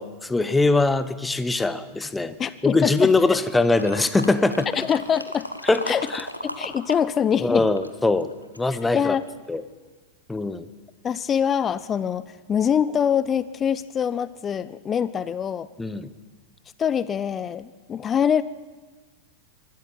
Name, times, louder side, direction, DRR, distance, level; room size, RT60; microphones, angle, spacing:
voice 1, 0.0-2.4 2.6-4.7 5.6-6.3 7.4-8.3 8.6-9.2 9.5-9.6 10.3-10.7 15.8-16.1, left 3 dB, 10° left, 14 dB, 1.1 m, -22 dB
voice 2, 2.4-3.1 4.8-5.5 5.9-6.1 6.4-7.6 8.9-9.2 11.0-15.7 16.8-18.4, left 8 dB, 25° left, 17 dB, 0.6 m, -24 dB
sound 1, 3.8-7.0 7.3-8.7 9.3-9.4, equal, 90° left, 1.5 m, -35 dB
24.0 x 13.0 x 9.3 m, 1.3 s
figure-of-eight pair, 90°, 0 cm